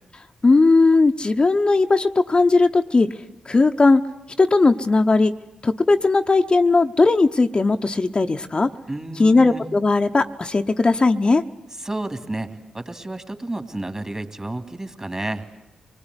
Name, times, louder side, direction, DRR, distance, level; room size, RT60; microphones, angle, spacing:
voice 1, 0.4-3.1 3.5-4.0 4.4-5.3 5.6-8.7 9.2-11.4, left 3 dB, 40° left, 5 dB, 1.0 m, -17 dB
voice 2, 8.9-9.7 11.8-12.5 12.7-15.4, right 2 dB, 25° right, 7 dB, 3.1 m, -31 dB
25.5 x 20.5 x 9.9 m, 0.99 s
supercardioid pair, 45°, 3 cm